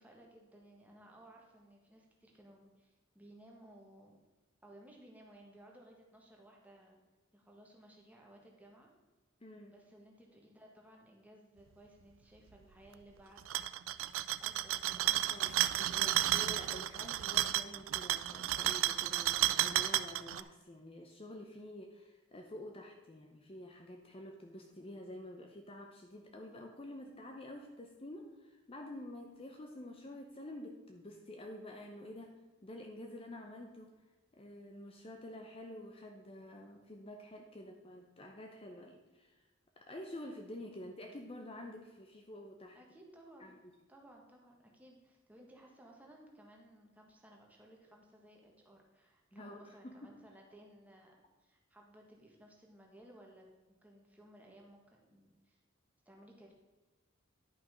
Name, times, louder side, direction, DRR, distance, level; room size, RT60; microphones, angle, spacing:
voice 1, 0.0-4.2 4.6-7.0 7.3-8.9 9.7-13.5 14.4-15.7 42.7-43.5 43.9-51.1 51.4-53.5 53.8-55.6 56.0-56.5, right 1 dB, 10° right, -1 dB, 1.5 m, -59 dB
voice 2, 9.4-9.7 15.3-15.5 15.8-32.3 32.6-33.9 34.3-39.5 39.8-42.8 43.4-43.6 49.3-50.1, left 1 dB, 30° left, 3 dB, 0.7 m, -49 dB
sound 1, 13.4-20.4, right 13 dB, 75° right, 0.4 m, -32 dB
10.5 x 5.8 x 5.1 m, 1.2 s
head